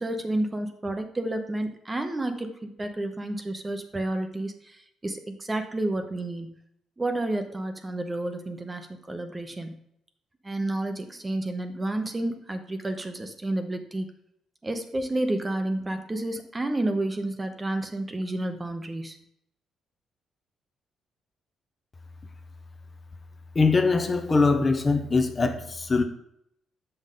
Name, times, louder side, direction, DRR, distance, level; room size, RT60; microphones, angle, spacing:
voice 1, 0.0-6.6 7.0-9.8 10.4-14.1 14.6-19.2, right 1 dB, 20° right, 0.8 m, -30 dB
voice 2, 23.6-26.0, left 4 dB, 30° left, 0.7 m, -22 dB
6.9 x 5.6 x 3.8 m
cardioid pair, 90°, 0 cm